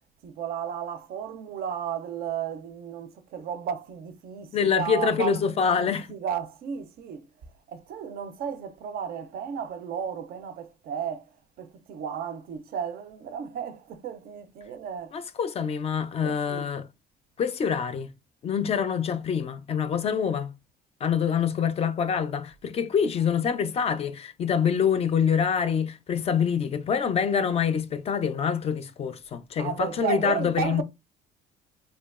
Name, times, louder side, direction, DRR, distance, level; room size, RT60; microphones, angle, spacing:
voice 1, 0.2-5.5 5.8-7.3 7.7-11.2 11.6-15.2 16.2-16.7 29.6-30.8, right 8 dB, 65° right, 0.4 m, -33 dB
voice 2, 4.5-6.2 15.1-16.8 17.4-18.1 18.4-20.5 21.0-30.8, left 7 dB, 40° left, 0.3 m, -26 dB
2.8 x 2.2 x 2.3 m
cardioid pair, 110°, 17 cm